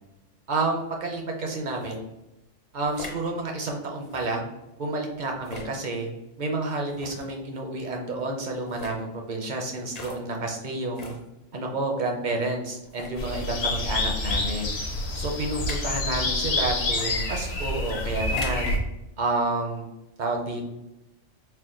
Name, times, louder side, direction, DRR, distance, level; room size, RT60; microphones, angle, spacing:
voice 1, 0.5-2.1 2.7-4.5 4.8-6.1 6.4-11.1 11.5-14.7 15.1-18.8 19.2-19.9 20.2-20.6, right 2 dB, 50° right, 1 dB, 0.6 m, -30 dB
sound 1, 1.7-2.0 2.8-3.2 4.0-4.3 5.4-5.7 6.9-7.3 8.6-9.0 9.9-10.2 10.9-11.2 11.9-12.0 12.8-13.2 14.2-14.4 15.5-15.9 16.9-17.1 18.2-18.7, left 3 dB, 45° left, 0.6 m, -40 dB
sound 2, 13.2-18.8, left 2 dB, 60° left, 0.9 m, -28 dB
4.4 x 2.2 x 3.7 m, 0.94 s
omnidirectional pair, 1.3 m